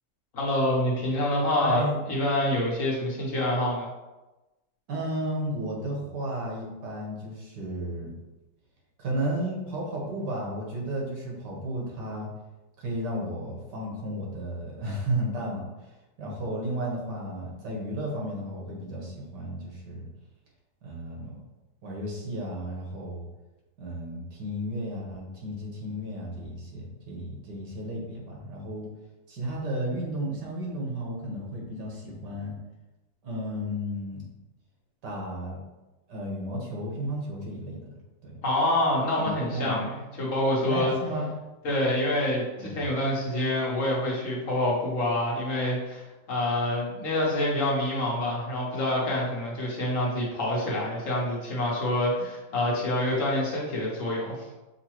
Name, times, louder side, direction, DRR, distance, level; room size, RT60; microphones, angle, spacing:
voice 1, 0.3-1.8 2.1-3.9 38.4-40.9 41.6-46.0 46.3-54.5, left 1 dB, 55° left, -3 dB, 1.3 m, -26 dB
voice 2, 1.6-2.0 4.9-8.1 9.0-12.3 12.8-15.9 16.2-20.1 20.8-21.4 21.8-23.3 23.8-28.9 29.3-32.6 33.2-34.3 35.0-35.6 36.1-37.9 38.2-38.4 39.2-39.9 40.7-41.3 42.6-42.9, right 1 dB, 80° right, -2 dB, 1.8 m, -33 dB
6.2 x 2.7 x 3.0 m, 1.1 s
omnidirectional pair, 1.8 m